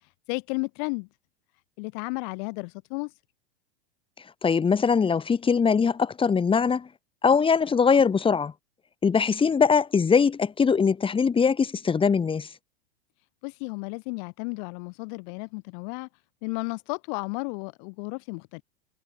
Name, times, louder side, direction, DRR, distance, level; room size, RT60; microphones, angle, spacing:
voice 1, 0.3-1.1 1.8-3.1 13.4-16.1 16.4-18.6, left 36 dB, 55° left, 1.8 m, -33 dB
voice 2, 4.4-6.9 7.2-8.5 9.0-12.5, left 6 dB, 15° left, 1.8 m, -22 dB
hypercardioid pair, 90°, 30 cm